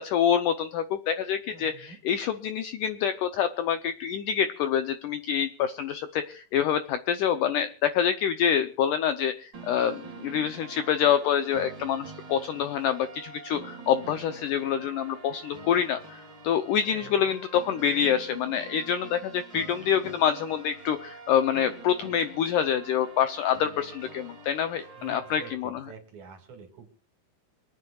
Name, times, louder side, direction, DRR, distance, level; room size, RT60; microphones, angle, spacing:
voice 1, 0.0-25.8, left 8 dB, 80° left, 10 dB, 1.9 m, -26 dB
voice 2, 1.5-2.0 16.9-17.2 25.0-26.9, right 5 dB, 55° right, 5 dB, 3.1 m, -47 dB
sound 1, 9.5-25.5, right 4 dB, 35° right, 2.4 m, -45 dB
26.5 x 9.3 x 2.4 m, 0.36 s
omnidirectional pair, 4.5 m